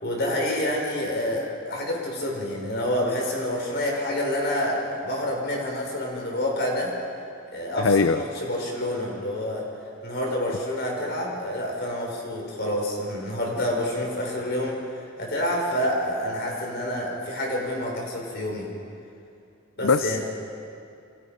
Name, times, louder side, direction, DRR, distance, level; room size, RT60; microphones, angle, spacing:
voice 1, 0.0-7.0 7.5-9.7 10.0-18.7 19.8-20.2, left 1 dB, 50° left, -1 dB, 5.6 m, -28 dB
voice 2, 7.8-8.2 19.8-20.2, left 4 dB, 70° left, 11 dB, 0.6 m, -21 dB
29.0 x 24.5 x 5.2 m, 2.6 s
head